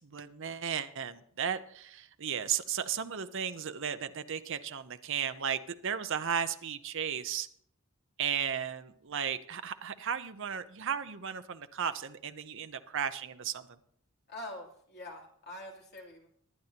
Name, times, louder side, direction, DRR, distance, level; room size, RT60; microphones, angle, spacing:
voice 1, 0.0-7.5 8.2-13.7, right 8 dB, 60° right, 10 dB, 0.7 m, -35 dB
voice 2, 14.3-16.3, left 1 dB, 50° left, -2 dB, 3.2 m, -45 dB
22.0 x 9.3 x 2.9 m, 0.64 s
head